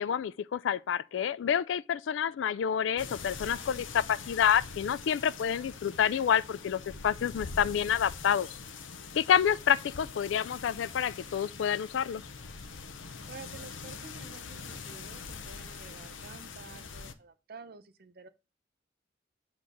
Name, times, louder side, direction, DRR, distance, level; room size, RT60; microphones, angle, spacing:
voice 1, 0.0-8.5 9.1-12.2, left 8 dB, 75° left, 0.3 m, -28 dB
sound 1, 3.0-17.1, left 5 dB, 90° left, 0.8 m, -44 dB
voice 2, 13.3-18.3, right 4 dB, 55° right, 0.7 m, -50 dB
8.5 x 3.1 x 5.3 m
head